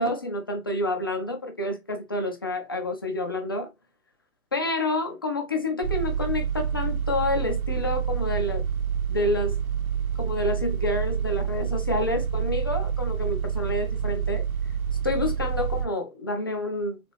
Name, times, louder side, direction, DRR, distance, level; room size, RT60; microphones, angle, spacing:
voice 1, 0.0-3.7 4.5-8.6 9.1-9.6 10.2-14.5 15.0-17.0, left 2 dB, 20° left, 0.3 m, -28 dB
sound 1, 5.8-15.8, right 8 dB, 75° right, 1.0 m, -28 dB
4.0 x 3.6 x 3.2 m
figure-of-eight pair, 115°, 42 cm